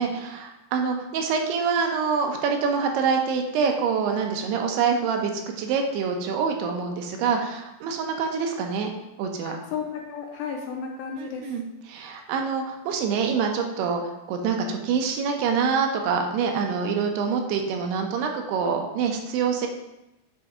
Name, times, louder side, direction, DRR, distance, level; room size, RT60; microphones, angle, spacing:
voice 1, 0.0-5.3 5.6-8.9 9.2-9.6 11.2-19.7, right 5 dB, 85° right, 3 dB, 2.7 m, -26 dB
voice 2, 9.4-11.5, left 6 dB, 80° left, 1 dB, 2.3 m, -33 dB
7.4 x 3.9 x 3.5 m, 0.94 s
omnidirectional pair, 4.6 m